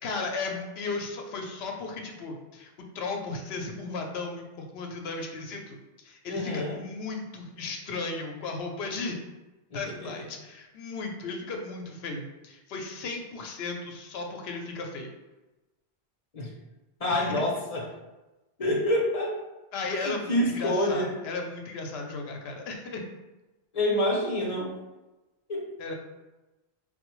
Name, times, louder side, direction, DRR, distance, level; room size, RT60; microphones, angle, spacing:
voice 1, 0.0-9.2 9.7-15.1 17.1-17.4 19.7-23.1 25.8-25.9, left 3 dB, 70° left, 2 dB, 0.8 m, -35 dB
voice 2, 6.3-6.8 9.7-10.1 16.3-16.5 17.0-17.9 18.6-19.3 19.9-21.1 23.7-24.7 25.5-25.7, left 1 dB, 40° left, -3 dB, 0.7 m, -27 dB
4.1 x 2.1 x 3.0 m, 1.1 s
omnidirectional pair, 1.1 m